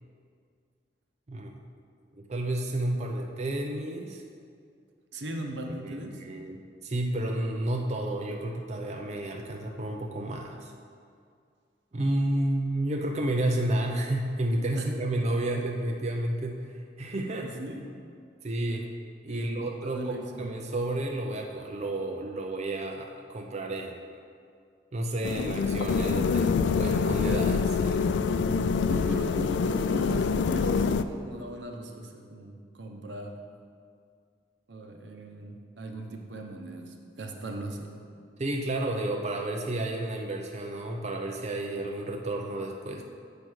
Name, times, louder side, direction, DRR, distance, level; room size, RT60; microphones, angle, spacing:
voice 1, 2.1-4.2 5.8-10.7 11.9-17.5 18.4-18.9 19.2-24.0 24.9-28.2 38.4-43.0, right 1 dB, 40° right, 2 dB, 0.5 m, -31 dB
voice 2, 5.1-6.2 14.7-15.1 17.2-17.8 19.3-20.5 28.8-33.4 34.7-37.9, right 1 dB, 85° right, 3 dB, 0.9 m, -39 dB
sound 1, 25.2-31.0, left 5 dB, 80° left, 0.3 m, -26 dB
7.4 x 5.2 x 6.2 m, 2.3 s
head